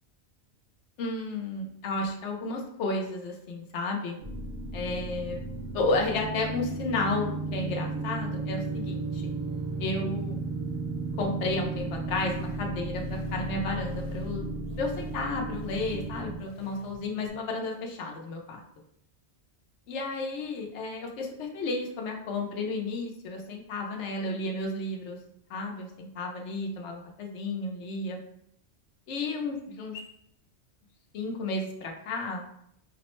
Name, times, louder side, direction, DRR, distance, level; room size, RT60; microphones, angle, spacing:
voice 1, 1.0-4.2 4.7-5.4 5.7-9.2 9.8-10.5 11.2-14.4 14.8-18.6 19.9-25.2 25.5-28.2 29.1-30.0 31.1-32.5, left 2 dB, 80° left, 1 dB, 1.0 m, -32 dB
sound 1, 4.2-16.4, right 3 dB, 35° right, 0.5 m, -34 dB
sound 2, 12.1-17.3, left 3 dB, 45° left, 0.4 m, -50 dB
5.0 x 2.0 x 3.0 m, 0.73 s
omnidirectional pair, 1.2 m